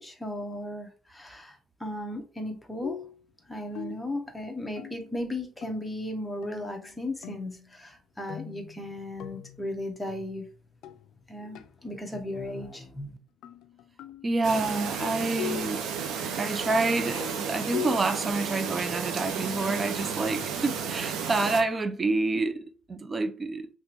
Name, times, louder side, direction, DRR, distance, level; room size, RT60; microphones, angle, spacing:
voice 1, 0.0-3.0 3.5-10.4 11.3-13.2, left 1 dB, 5° left, 0.8 m, -36 dB
sound 1, 2.8-3.2 3.7-4.2 4.8-5.3 5.6-6.0 6.4-7.7 8.3-11.2 11.5-11.8 13.4-15.8 16.2-18.0, left 10 dB, 85° left, 0.3 m, -41 dB
voice 2, 14.2-15.9 16.4-23.7, right 3 dB, 30° right, 0.5 m, -28 dB
Chirp tweet, 14.4-21.6, right 6 dB, 90° right, 0.5 m, -33 dB
3.5 x 3.0 x 2.9 m
cardioid pair, 110°, 0 cm